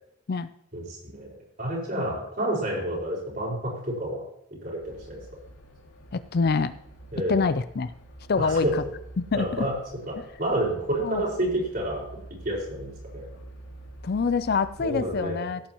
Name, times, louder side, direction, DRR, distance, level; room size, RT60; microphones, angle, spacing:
voice 1, 0.7-4.2 4.6-5.2 7.1-7.4 8.4-8.7 9.3-9.7 10.1-12.1 12.5-13.3 14.8-15.5, right 1 dB, 40° right, -3 dB, 5.1 m, -29 dB
sound 1, 4.8-15.2, right 1 dB, 65° left, 2.4 m, -47 dB
voice 2, 6.1-6.8 7.3-7.9 8.3-8.8 9.2-9.7 11.0-11.2 14.0-15.6, left 4 dB, 45° left, 13 dB, 0.4 m, -25 dB
16.5 x 8.8 x 3.0 m, 0.74 s
head